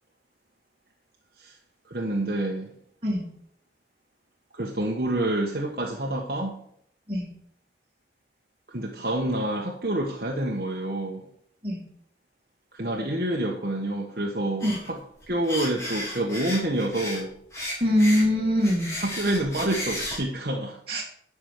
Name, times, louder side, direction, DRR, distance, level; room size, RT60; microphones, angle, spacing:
voice 1, 1.9-2.7 4.5-6.6 8.7-11.3 12.7-15.0 15.3-17.3 19.0-20.8, right 1 dB, 55° right, -1 dB, 1.4 m, -28 dB
sound 1, 14.6-14.9 15.2-17.2 17.5-20.2, left 1 dB, 15° left, 3.9 m, -34 dB
voice 2, 17.8-18.9 20.9-21.0, equal, 30° right, -5 dB, 2.3 m, -23 dB
11.0 x 6.1 x 6.7 m, 0.65 s
head